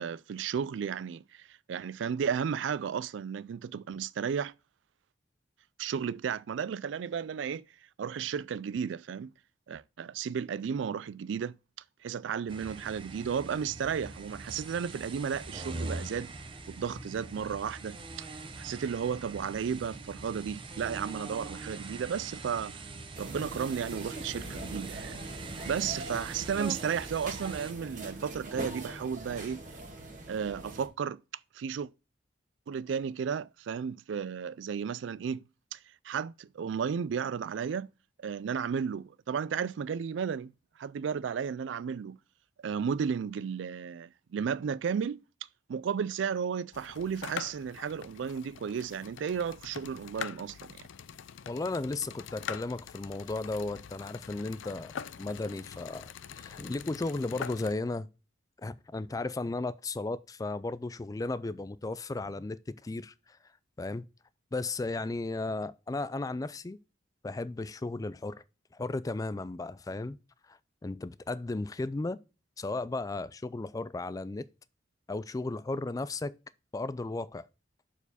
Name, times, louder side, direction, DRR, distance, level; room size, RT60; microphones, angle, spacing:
voice 1, 0.0-4.5 5.8-7.7 8.0-9.3 9.7-11.6 12.0-16.3 16.7-18.3 18.6-22.8 23.2-25.2 25.6-29.7 30.3-31.2 31.5-31.9 32.7-35.4 35.7-35.8 36.0-37.9 38.2-40.5 40.8-42.2 42.6-45.2 45.7-50.9, right 7 dB, 75° right, 0.3 m, -33 dB
sound 1, 12.5-27.7, right 2 dB, 25° right, 0.6 m, -43 dB
sound 2, 23.1-30.9, right 2 dB, 45° right, 1.5 m, -42 dB
sound 3, 46.7-57.7, left 7 dB, 85° left, 0.4 m, -44 dB
voice 2, 51.5-58.1 58.6-63.4 63.8-64.1 64.5-66.8 67.2-68.4 68.7-70.2 70.5-72.2 72.6-74.5 75.1-76.4 76.7-77.5, left 2 dB, 20° left, 0.3 m, -35 dB
6.9 x 4.6 x 4.1 m
head